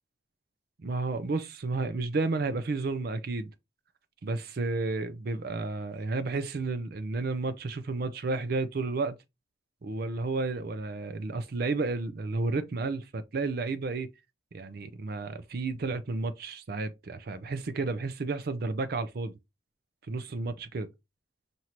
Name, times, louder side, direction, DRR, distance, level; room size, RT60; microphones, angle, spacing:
voice 1, 0.8-3.5 4.2-9.2 9.8-14.1 14.5-19.4 20.1-20.9, right 3 dB, 55° right, 0.5 m, -32 dB
5.7 x 2.6 x 3.0 m
head